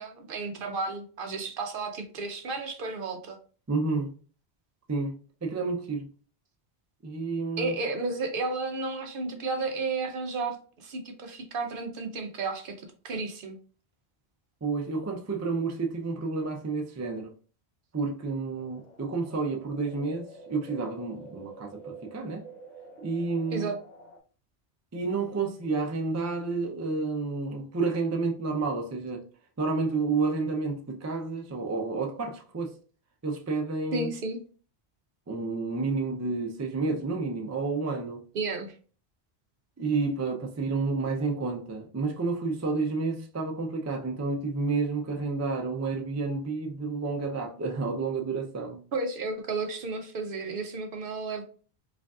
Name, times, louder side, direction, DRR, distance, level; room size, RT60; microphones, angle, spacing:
voice 1, 0.0-3.4 7.6-13.6 23.5-23.8 33.9-34.4 38.3-38.8 48.9-51.4, right 3 dB, 60° right, 0.7 m, -32 dB
voice 2, 3.7-4.1 4.9-5.1 5.4-6.1 7.0-7.7 14.6-17.3 17.9-22.4 23.0-23.7 24.9-29.2 29.6-32.7 33.2-34.1 35.3-38.2 39.8-48.8, right 4 dB, 25° right, 0.3 m, -30 dB
sound 1, 18.5-24.2, right 3 dB, 45° left, 0.8 m, -48 dB
4.8 x 2.5 x 2.3 m
omnidirectional pair, 1.1 m